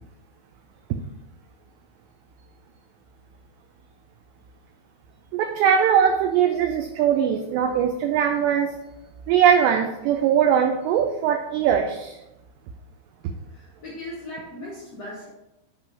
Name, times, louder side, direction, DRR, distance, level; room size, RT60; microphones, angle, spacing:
voice 1, 5.3-8.8 9.3-12.2, right 8 dB, 85° right, 5 dB, 2.4 m, -21 dB
voice 2, 13.5-15.3, left 1 dB, 65° left, -7 dB, 1.5 m, -38 dB
8.4 x 3.7 x 5.9 m, 0.92 s
omnidirectional pair, 5.5 m